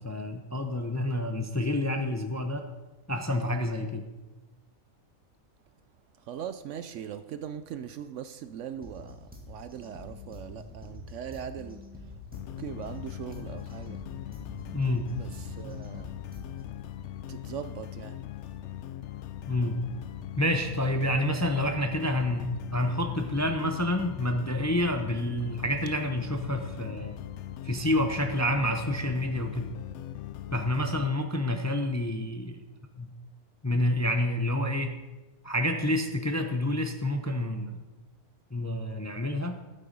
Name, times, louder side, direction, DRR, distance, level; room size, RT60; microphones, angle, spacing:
voice 1, 0.0-2.7 3.1-4.0 14.7-15.1 19.5-19.9 20.4-27.1 27.6-29.7 30.5-32.6 32.9-33.1 33.6-34.9 35.4-37.8 38.5-39.6, left 1 dB, 15° left, 0.6 m, -28 dB
voice 2, 6.2-12.1 12.6-14.0 15.1-16.2 17.3-18.2, right 9 dB, 70° right, 0.8 m, -40 dB
sound 1, 8.8-16.8, left 2 dB, 5° right, 1.8 m, -46 dB
sound 2, 12.3-31.1, left 12 dB, 65° left, 0.7 m, -40 dB
12.5 x 7.6 x 5.3 m
omnidirectional pair, 1.5 m